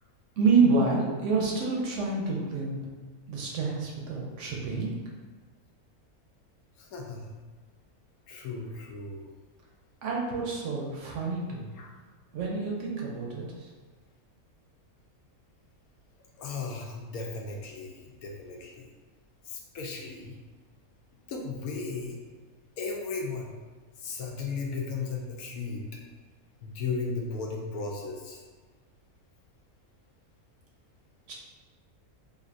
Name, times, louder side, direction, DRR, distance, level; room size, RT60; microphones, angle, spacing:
voice 1, 0.4-2.8 3.3-4.9 10.0-11.7 12.3-13.7 31.3-31.4, right 4 dB, 70° right, -2 dB, 0.8 m, -28 dB
voice 2, 6.8-7.4 8.3-9.2 11.7-11.9 16.4-18.8 19.4-20.4 21.3-22.2 22.8-23.5 24.0-26.0 26.6-28.4, left 4 dB, 90° left, 0 dB, 1.1 m, -36 dB
3.3 x 2.5 x 2.5 m, 1.4 s
omnidirectional pair, 1.5 m